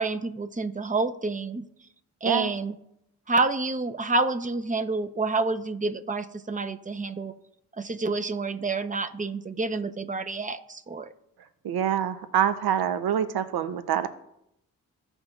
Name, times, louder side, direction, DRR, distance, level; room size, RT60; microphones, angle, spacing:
voice 1, 0.0-1.6 2.2-2.8 3.3-7.3 7.8-11.1, right 3 dB, 20° right, 10 dB, 0.7 m, -28 dB
voice 2, 11.6-14.1, right 9 dB, 85° right, 11 dB, 0.7 m, -26 dB
16.0 x 5.4 x 2.4 m, 0.79 s
cardioid pair, 45°, 36 cm